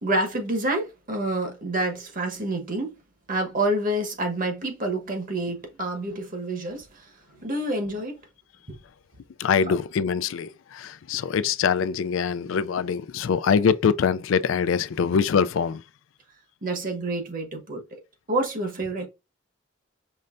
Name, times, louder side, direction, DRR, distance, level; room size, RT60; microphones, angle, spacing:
voice 1, 0.0-3.0 3.3-7.1 7.4-8.2 9.7-9.8 16.6-17.8 18.3-19.1, right 1 dB, 45° right, 1.2 m, -28 dB
voice 2, 9.4-15.8, left 6 dB, 75° left, 0.4 m, -24 dB
5.4 x 3.3 x 2.5 m
head